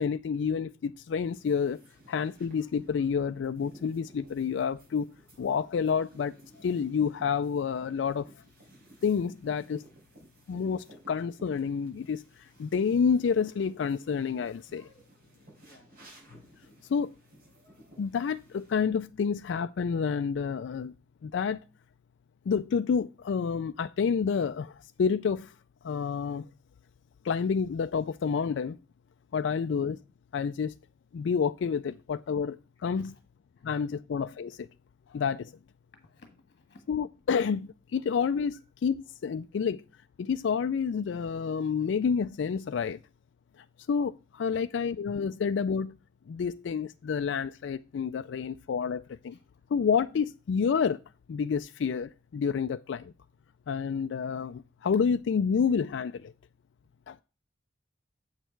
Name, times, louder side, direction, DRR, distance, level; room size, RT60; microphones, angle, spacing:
voice 1, 0.0-1.8 2.1-5.1 5.4-8.3 9.0-9.8 10.5-14.9 16.9-17.1 18.0-20.9 21.2-21.6 22.5-25.5 25.8-26.5 27.2-28.8 29.3-30.0 30.3-30.8 31.1-33.1 33.6-34.7 35.1-35.5 36.9-39.8 40.2-43.0 43.9-46.0 46.3-49.4 49.7-51.0 51.3-53.1 53.7-56.3 57.1-57.2, left 6 dB, 65° left, 0.3 m, -29 dB
sound 1, 1.3-18.7, right 1 dB, 50° right, 4.7 m, -56 dB
voice 2, 36.0-36.8 49.3-49.4, left 1 dB, 50° left, 1.5 m, -55 dB
8.0 x 6.5 x 4.5 m
head